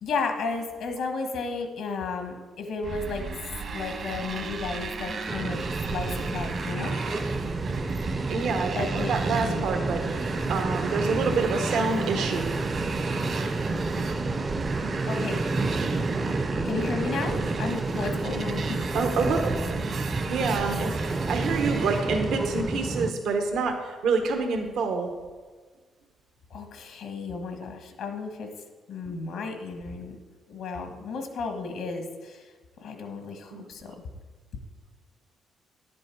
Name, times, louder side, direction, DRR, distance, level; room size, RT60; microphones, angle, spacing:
voice 1, 0.0-3.2 3.7-6.9 8.7-9.6 15.0-15.4 16.6-18.8 26.5-28.5 28.9-30.2 30.5-32.4 32.8-34.0, left 4 dB, 80° left, 5 dB, 1.4 m, -33 dB
Motorcycle, 2.8-22.6, right 4 dB, 55° right, 1.2 m, -36 dB
sound 1, 5.3-23.1, right 3 dB, 25° right, 0.5 m, -29 dB
voice 2, 8.3-12.6 18.9-19.5 20.3-21.0 21.3-25.1 33.5-33.7, right 4 dB, 80° right, 4 dB, 1.1 m, -27 dB
10.5 x 7.7 x 4.6 m, 1.4 s
cardioid pair, 90°, 0 cm